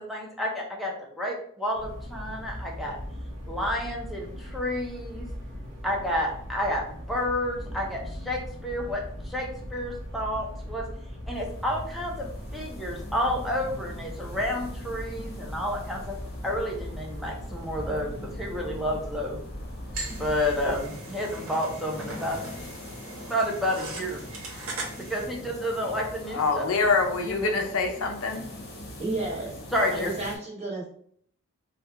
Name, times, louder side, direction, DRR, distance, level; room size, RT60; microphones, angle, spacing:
voice 1, 0.0-3.0 3.5-5.3 5.8-10.8 11.3-16.1 16.4-19.4 20.1-22.4 23.2-24.2 25.0-26.6 27.3-27.5 29.7-30.1, left 1 dB, ahead, -2 dB, 0.6 m, -30 dB
sound 1, 1.7-20.9, equal, 55° right, 0.9 m, -39 dB
sound 2, 11.3-30.4, left 1 dB, 45° left, 0.8 m, -43 dB
sound 3, 19.9-25.2, right 2 dB, 80° right, 1.1 m, -40 dB
voice 2, 26.3-28.4, left 4 dB, 70° left, 4 dB, 0.6 m, -25 dB
voice 3, 29.0-29.5 29.9-30.9, right 2 dB, 30° right, -4 dB, 1.0 m, -32 dB
3.2 x 2.3 x 3.3 m, 0.63 s
head